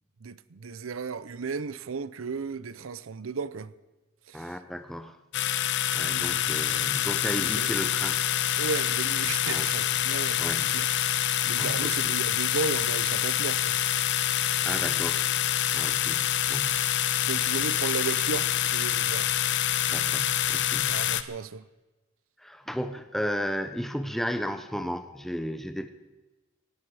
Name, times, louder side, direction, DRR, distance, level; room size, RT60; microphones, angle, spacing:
voice 1, 0.2-3.7 4.3-4.6 6.0-6.9 7.3-7.7 8.6-10.4 10.7-11.1 11.4-13.8 17.2-19.3 20.8-21.6, right 5 dB, 80° right, 0.6 m, -35 dB
voice 2, 4.3-5.2 5.5-8.2 9.5-9.7 10.4-10.6 11.6-11.9 14.6-15.3 15.7-16.9 19.9-21.1 22.4-25.9, equal, ahead, 0.6 m, -34 dB
sound 1, 5.3-21.2, left 11 dB, 60° left, 0.7 m, -26 dB
18.0 x 16.5 x 4.8 m
head